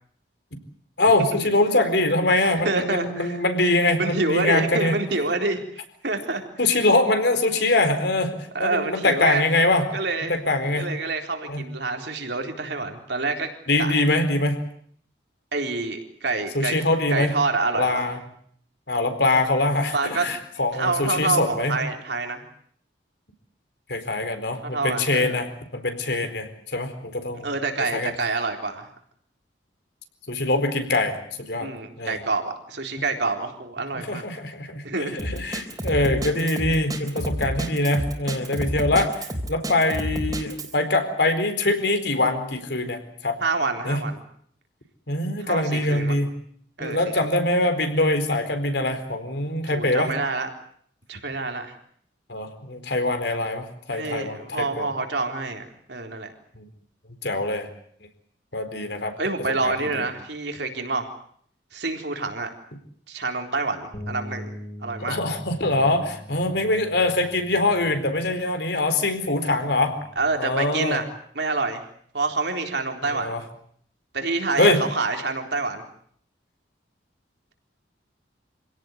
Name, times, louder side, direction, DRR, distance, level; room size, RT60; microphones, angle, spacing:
voice 1, 1.0-5.0 6.6-8.3 8.6-9.9 10.3-10.9 11.5-11.6 13.7-14.6 16.5-17.3 17.8-18.2 18.9-21.8 23.9-27.5 27.9-28.1 30.3-31.7 32.0-32.2 34.1-43.4 43.8-44.0 45.1-46.3 46.8-50.1 52.3-54.9 56.5-56.6 57.2-57.7 58.5-59.1 59.6-60.1 65.0-69.9 70.4-71.0 73.1-73.4 74.6-74.8, left 2 dB, 60° left, 8 dB, 4.2 m, -23 dB
voice 2, 2.6-3.4 4.0-6.4 8.5-9.4 9.9-10.4 10.8-13.5 13.8-13.9 15.5-16.7 17.1-18.1 19.9-20.2 20.8-22.4 24.6-25.4 27.4-28.9 31.6-34.2 34.8-35.2 43.4-44.2 45.5-46.2 46.8-47.3 49.7-50.5 51.1-51.7 53.9-56.3 59.2-61.1 61.7-62.5 63.1-64.5 64.8-65.2 70.2-71.0 71.4-71.8 72.1-73.4 74.1-75.8, right 3 dB, 65° right, 4 dB, 4.0 m, -27 dB
Drum kit, 35.2-40.7, right 1 dB, 20° right, 3.9 m, -30 dB
Bass guitar, 63.9-70.2, left 1 dB, 35° left, 5.1 m, -41 dB
27.0 x 17.5 x 9.4 m, 0.63 s
head